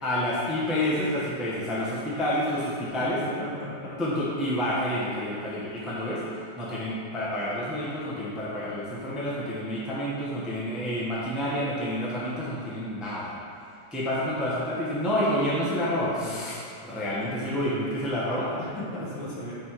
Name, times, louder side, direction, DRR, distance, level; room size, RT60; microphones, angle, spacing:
voice 1, 0.0-3.2 4.0-13.3 13.9-18.5, left 1 dB, ahead, -8 dB, 0.6 m, -29 dB
voice 2, 2.8-4.0 16.0-16.5 18.6-19.6, left 1 dB, 80° left, -6 dB, 2.0 m, -37 dB
6.2 x 3.7 x 4.6 m, 2.6 s
omnidirectional pair, 2.0 m